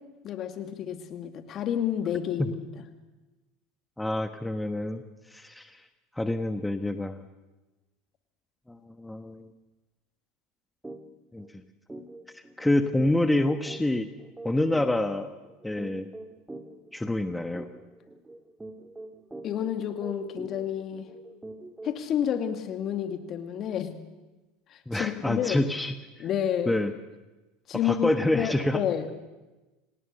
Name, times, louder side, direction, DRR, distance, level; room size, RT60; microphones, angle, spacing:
voice 1, 0.2-2.9 19.4-21.1 21.8-23.9 24.7-25.7 26.2-26.7 27.7-29.1, left 9 dB, 45° left, 7 dB, 2.4 m, -30 dB
voice 2, 4.0-5.0 5.3-5.8 6.2-7.2 8.7-9.5 11.3-11.5 12.3-14.1 14.4-15.3 15.6-16.1 16.9-17.7 24.9-26.0 26.7-26.9 27.8-28.8, left 1 dB, 5° left, 8 dB, 1.3 m, -27 dB
sound 1, 10.8-11.0 11.4-11.5 11.9-22.1, right 2 dB, 10° right, 2.0 m, -44 dB
27.0 x 18.5 x 6.7 m, 1.1 s
hypercardioid pair, 80°, 0 cm